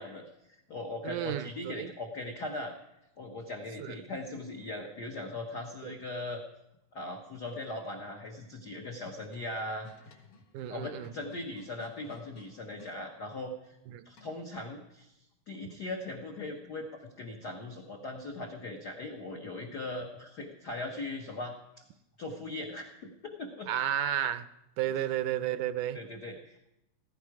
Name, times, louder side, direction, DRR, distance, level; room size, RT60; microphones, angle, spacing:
voice 1, 0.0-2.7 3.2-6.4 6.9-10.2 10.7-13.7 14.0-15.1 15.5-16.9 17.2-21.6 22.2-23.7 25.9-26.7, left 2 dB, 70° left, 1 dB, 0.9 m, -39 dB
voice 2, 1.0-1.9 3.8-4.0 5.8-5.9 10.5-11.1 13.9-14.0 23.7-24.5 24.8-26.0, right 11 dB, 80° right, 12 dB, 2.0 m, -32 dB
sound 1, 8.7-13.0 14.2-14.6, left 3 dB, 90° left, 3.3 m, -55 dB
15.0 x 15.0 x 4.7 m, 0.87 s
omnidirectional pair, 3.6 m